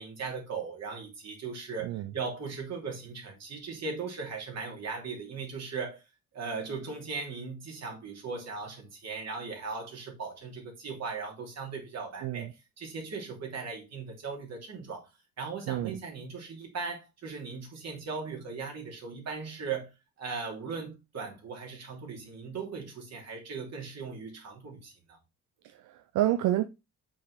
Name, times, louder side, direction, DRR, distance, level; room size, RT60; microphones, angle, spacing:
voice 1, 0.0-6.0 6.3-15.1 15.4-19.9 20.2-25.2, right 4 dB, 60° right, 3.0 m, -38 dB
voice 2, 12.2-12.5 15.7-16.0 25.6-26.7, right 13 dB, 85° right, 0.6 m, -29 dB
6.1 x 4.9 x 4.1 m
cardioid pair, 90°, 30 cm